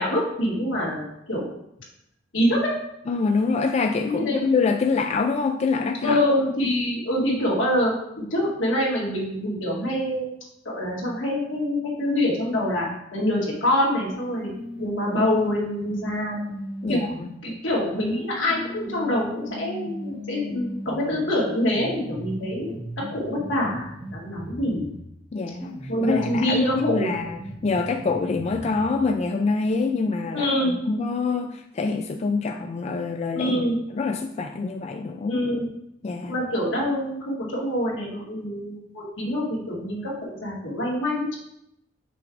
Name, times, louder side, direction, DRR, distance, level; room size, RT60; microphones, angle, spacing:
voice 1, 0.0-1.5 2.3-2.7 4.1-4.4 6.0-7.9 8.3-10.3 10.7-12.9 13.1-14.5 14.8-16.4 16.9-17.0 17.4-22.7 23.0-24.9 25.3-25.5 25.9-27.1 30.3-30.8 33.3-33.8 35.3-35.7 36.3-41.4, left 1 dB, 85° left, -4 dB, 2.1 m, -25 dB
voice 2, 3.1-6.2 16.8-17.3 25.3-25.7 26.0-33.5 33.9-35.4 36.0-36.4, left 4 dB, 35° left, 5 dB, 0.3 m, -25 dB
sound 1, 14.1-17.4 18.1-25.1 25.6-29.1, left 1 dB, 30° right, 0.8 m, -37 dB
5.9 x 3.8 x 4.6 m, 0.78 s
head